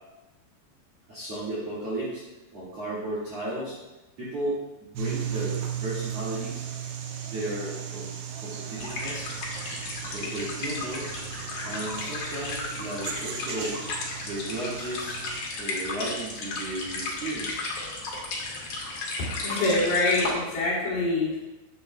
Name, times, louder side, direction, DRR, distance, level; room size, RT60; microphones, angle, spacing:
voice 1, 1.1-2.2 2.5-3.8 4.2-4.6 4.9-6.6 7.2-8.1 8.4-9.3 10.1-11.1 11.6-13.8 14.2-15.2 15.6-17.6, right 1 dB, 45° right, -9 dB, 2.3 m, -34 dB
sound 1, 5.0-15.4, right 8 dB, 85° right, 2.1 m, -36 dB
sound 2, 8.8-20.3, left 3 dB, 90° left, 1.5 m, -34 dB
voice 2, 19.4-21.4, left 2 dB, 60° left, -7 dB, 4.4 m, -25 dB
9.5 x 8.1 x 2.3 m, 1.0 s
omnidirectional pair, 5.4 m